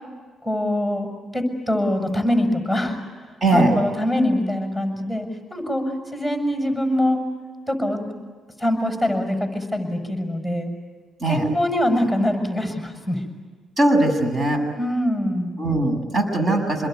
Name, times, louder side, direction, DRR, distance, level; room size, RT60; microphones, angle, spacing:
voice 1, 0.4-3.0 3.5-5.3 5.5-7.2 7.7-8.1 8.6-10.7 11.3-13.2 14.8-15.6, left 1 dB, 10° right, 3 dB, 7.2 m, -23 dB
voice 2, 3.4-3.8 11.2-11.5 13.8-14.6 15.6-16.9, right 2 dB, 40° right, 4 dB, 7.4 m, -20 dB
28.0 x 22.0 x 9.5 m, 1.5 s
cardioid pair, 90°, 0 cm